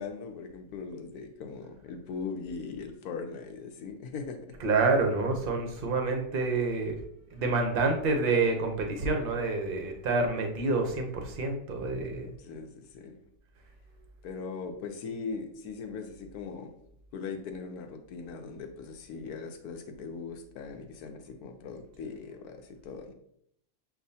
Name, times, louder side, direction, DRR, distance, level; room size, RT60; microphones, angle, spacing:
voice 1, 0.0-4.4 12.4-13.2 14.2-16.7 17.1-23.1, left 5 dB, 75° left, 5 dB, 1.1 m, -40 dB
voice 2, 4.6-7.0 7.3-12.3, right 3 dB, 55° right, 4 dB, 0.6 m, -28 dB
7.0 x 2.4 x 2.7 m, 0.71 s
omnidirectional pair, 1.7 m